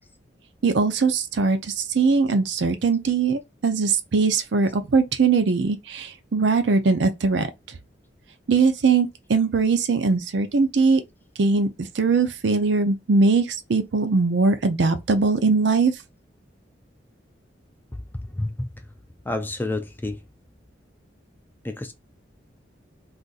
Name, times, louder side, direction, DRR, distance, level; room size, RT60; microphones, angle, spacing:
voice 1, 0.6-7.5 8.5-11.0 11.4-15.9, right 4 dB, 70° right, 0.5 m, -21 dB
voice 2, 17.9-18.5 19.3-20.2 21.6-21.9, left 2 dB, 10° left, 0.3 m, -29 dB
2.5 x 2.5 x 3.9 m
head